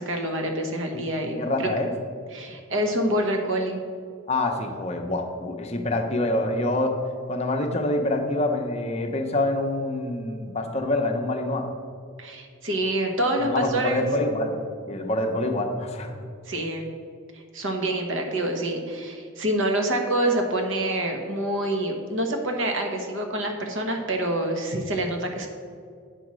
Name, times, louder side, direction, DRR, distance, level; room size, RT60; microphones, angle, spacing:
voice 1, 0.0-1.7 2.3-3.8 12.2-14.1 16.5-16.9 17.3-25.5, right 1 dB, 60° right, 3 dB, 1.1 m, -26 dB
voice 2, 1.4-1.9 4.3-7.0 7.3-11.7 13.4-14.5 14.8-16.1, left 2 dB, 30° left, 3 dB, 0.7 m, -26 dB
8.8 x 4.3 x 6.2 m, 2.2 s
head